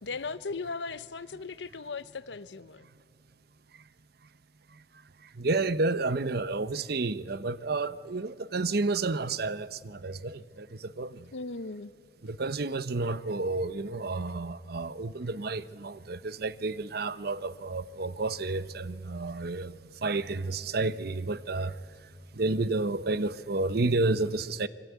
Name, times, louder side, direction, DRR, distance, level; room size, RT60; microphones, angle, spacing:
voice 1, 0.0-2.9 11.3-11.9, left 4 dB, 85° left, 0.8 m, -37 dB
voice 2, 5.2-11.3 12.2-21.8 22.3-24.7, right 3 dB, 60° right, 0.8 m, -31 dB
25.0 x 24.0 x 9.4 m
head